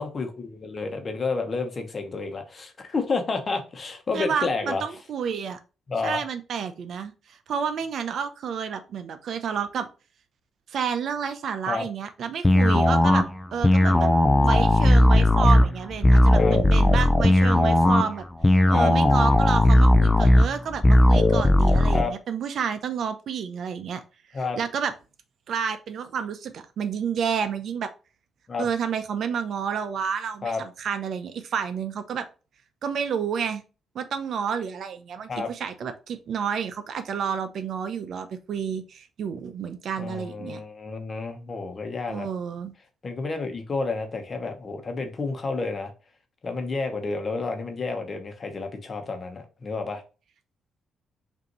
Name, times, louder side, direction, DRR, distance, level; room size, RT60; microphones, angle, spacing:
voice 1, 0.0-4.8 5.9-6.2 11.7-11.9 16.4-16.6 18.7-18.9 21.9-22.1 24.3-24.6 28.5-28.7 30.4-30.6 35.3-35.5 40.0-42.3 43.0-45.9 46.4-50.0, left 4 dB, 40° left, 5 dB, 1.0 m, -30 dB
voice 2, 4.1-5.6 6.0-9.9 10.7-13.2 13.5-14.1 14.4-18.2 18.7-24.0 24.6-24.9 25.5-27.9 28.6-32.3 32.8-33.6 33.9-40.6 42.1-42.7, right 7 dB, 65° right, 9 dB, 0.6 m, -30 dB
sound 1, 12.4-22.0, left 1 dB, 10° left, 0.5 m, -17 dB
5.2 x 2.7 x 3.0 m, 0.32 s
cardioid pair, 90°, 0 cm